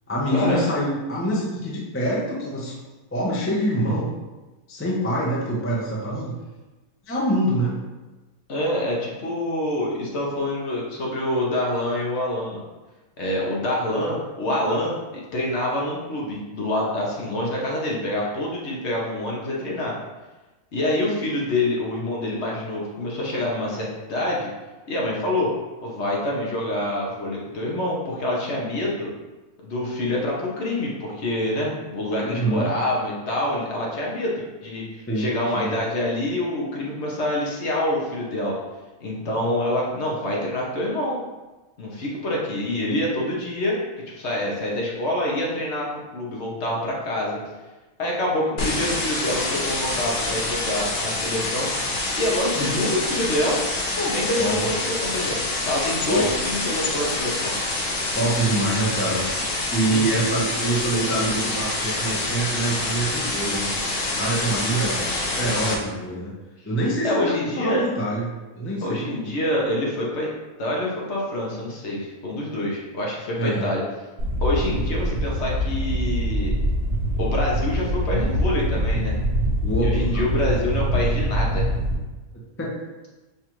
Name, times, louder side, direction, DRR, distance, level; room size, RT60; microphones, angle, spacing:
voice 1, 0.1-2.8 3.1-4.1 4.7-6.4 7.1-7.7 32.2-32.7 35.1-35.3 35.5-35.7 52.5-52.8 54.4-54.7 56.1-56.2 58.1-59.2 59.7-63.7 64.0-65.0 65.4-66.3 66.6-68.3 68.5-69.0 73.4-73.7 79.6-80.2 82.6-82.7, right 1 dB, 15° left, -5 dB, 0.4 m, -25 dB
voice 2, 8.5-12.6 13.2-20.0 20.7-24.5 24.9-25.5 25.8-29.1 29.6-38.6 39.0-41.2 41.8-43.8 44.1-45.9 46.1-47.4 48.0-51.7 52.2-53.6 54.0-55.4 55.7-57.5 59.8-60.2 67.0-67.8 68.8-70.3 70.6-73.8 74.4-76.5 77.2-79.2 79.8-81.7, left 1 dB, 55° left, -3 dB, 0.9 m, -26 dB
sound 1, 48.6-65.7, left 2 dB, 90° left, 1.3 m, -26 dB
sound 2, 74.2-82.0, equal, 60° right, 0.9 m, -24 dB
5.7 x 2.4 x 3.0 m, 1.2 s
omnidirectional pair, 1.5 m